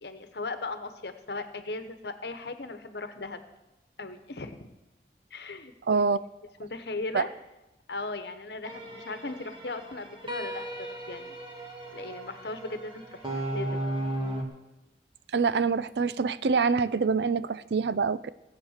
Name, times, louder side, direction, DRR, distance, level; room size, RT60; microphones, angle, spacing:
voice 1, 0.0-3.4 4.0-4.7 5.3-6.1 6.6-7.3 7.9-11.3 11.9-13.8, left 3 dB, 75° left, 9 dB, 1.1 m, -38 dB
voice 2, 5.9-6.2 7.1-7.2 15.3-18.3, right 5 dB, 75° right, 16 dB, 0.5 m, -25 dB
sound 1, 8.6-14.4, right 1 dB, 30° right, 1.7 m, -36 dB
17.0 x 8.3 x 6.5 m, 0.99 s
head